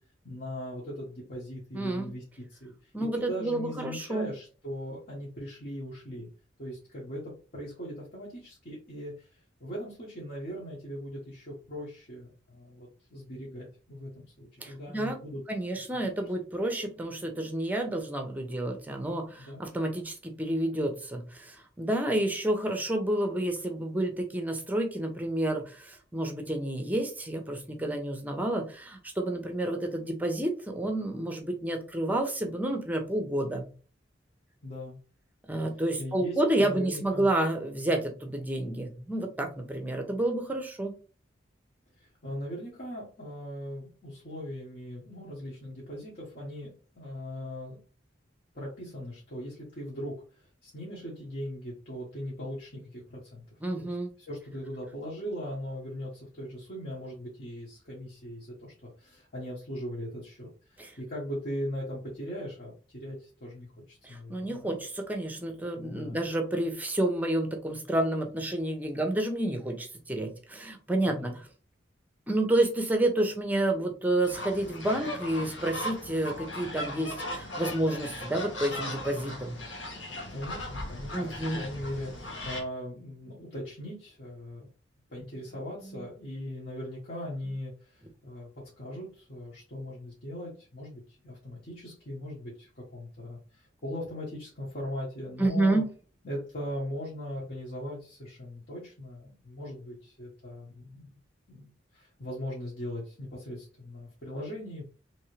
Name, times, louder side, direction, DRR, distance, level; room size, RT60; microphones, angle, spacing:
voice 1, 0.2-2.2 2.5-6.3 6.6-15.4 15.9-16.0 19.4-19.6 34.6-35.0 36.0-37.3 42.0-47.8 48.5-53.4 53.7-64.8 65.7-66.2 71.0-71.3 80.3-84.7 85.1-88.5 88.8-95.8 96.2-101.2 101.5-101.7 101.9-104.8, equal, 50° left, -5 dB, 1.3 m, -39 dB
voice 2, 1.7-2.1 2.9-4.3 14.6-15.2 15.5-33.7 35.5-40.9 53.6-54.1 60.8-60.9 64.0-71.4 72.3-79.6 81.1-81.6 85.8-86.0 95.4-95.8, right 1 dB, 10° right, 4 dB, 0.7 m, -30 dB
sound 1, 74.2-82.6, left 1 dB, 75° left, 1.3 m, -38 dB
3.6 x 3.2 x 3.2 m, 0.38 s
head